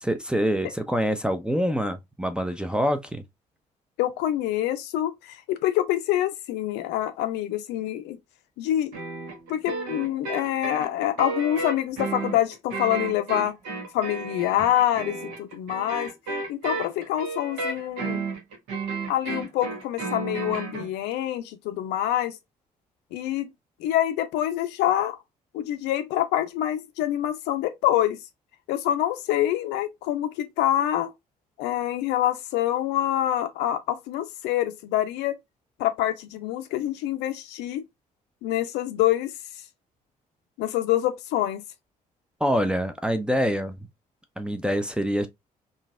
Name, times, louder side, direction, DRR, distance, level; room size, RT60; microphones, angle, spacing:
voice 1, 0.0-3.2 42.4-43.8 44.4-45.3, equal, 5° right, 0.5 m, -25 dB
voice 2, 4.0-8.2 8.6-8.9 9.5-13.5 13.9-16.1 16.5-18.2 19.1-22.3 23.1-23.5 23.8-25.2 25.5-28.2 28.7-31.1 31.6-35.4 35.8-37.8 38.4-39.3 40.6-41.6, left 12 dB, 60° left, 0.5 m, -26 dB
sound 1, 8.9-20.9, right 3 dB, 65° right, 1.2 m, -33 dB
3.8 x 2.6 x 2.3 m
figure-of-eight pair, 45°, 20 cm